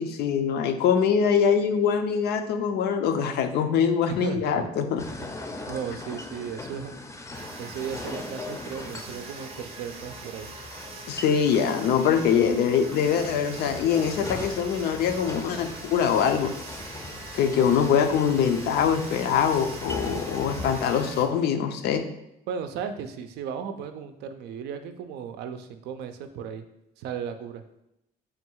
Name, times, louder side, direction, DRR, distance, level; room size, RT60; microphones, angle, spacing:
voice 1, 0.0-5.1 11.1-16.5 17.3-22.1, left 7 dB, 75° left, 7 dB, 0.5 m, -23 dB
voice 2, 4.1-4.7 5.2-5.4 5.7-6.9 7.6-10.5 22.5-26.6 27.0-27.6, right 7 dB, 80° right, 8 dB, 0.4 m, -35 dB
sound 1, 5.0-21.2, left 2 dB, 15° left, 0.5 m, -39 dB
sound 2, 7.3-21.3, right 4 dB, 35° right, 0.6 m, -43 dB
3.8 x 2.3 x 4.4 m, 0.84 s
cardioid pair, 110°, 17 cm